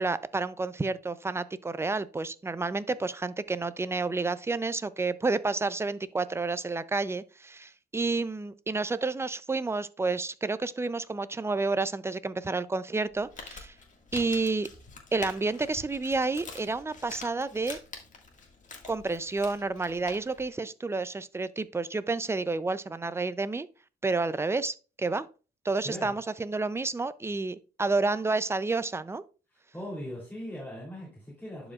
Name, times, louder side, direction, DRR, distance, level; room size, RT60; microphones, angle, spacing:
voice 1, 0.0-13.7 14.1-14.7 15.1-17.8 18.9-23.7 24.0-25.3 25.6-29.2, right 3 dB, 15° right, 0.4 m, -30 dB
Crumpling crinkling, 13.1-20.5, left 3 dB, 40° left, 1.8 m, -46 dB
voice 2, 25.8-26.2 29.7-31.7, equal, 10° left, 3.1 m, -39 dB
11.5 x 5.0 x 2.4 m
cardioid pair, 90°, 20 cm